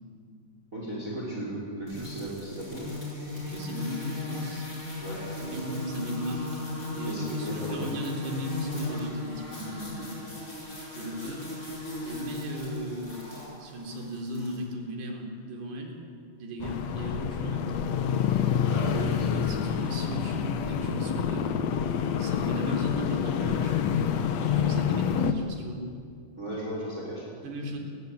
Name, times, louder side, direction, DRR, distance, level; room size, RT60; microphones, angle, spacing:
voice 1, 0.7-2.9 5.0-5.6 7.0-7.9 18.7-19.5 26.4-27.2, right 1 dB, 15° right, -3 dB, 5.9 m, -36 dB
sound 1, 1.9-14.6, left 2 dB, 15° left, 7.5 m, -37 dB
voice 2, 3.3-4.7 5.4-10.1 10.9-11.5 12.1-13.3 13.6-16.0 16.4-17.8 19.0-21.5 22.2-23.8 24.3-25.8 27.4-27.8, equal, 65° right, 1 dB, 5.9 m, -36 dB
sound 2, 16.6-25.3, left 8 dB, 75° left, 1.5 m, -27 dB
29.5 x 23.0 x 8.7 m, 2.3 s
omnidirectional pair, 5.2 m